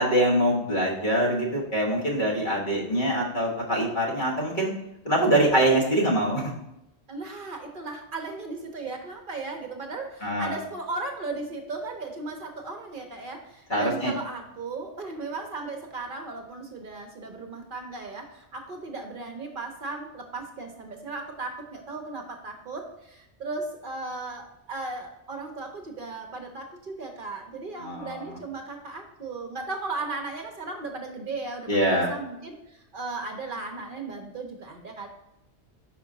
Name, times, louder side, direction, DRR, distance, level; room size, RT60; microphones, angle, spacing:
voice 1, 0.0-4.7 5.0-6.6 10.2-10.6 13.7-14.1 27.8-28.4 31.7-32.1, right 1 dB, 45° left, -4 dB, 1.5 m, -24 dB
voice 2, 7.1-35.1, right 3 dB, 55° right, 3 dB, 0.8 m, -36 dB
5.1 x 4.8 x 3.8 m, 0.87 s
omnidirectional pair, 1.1 m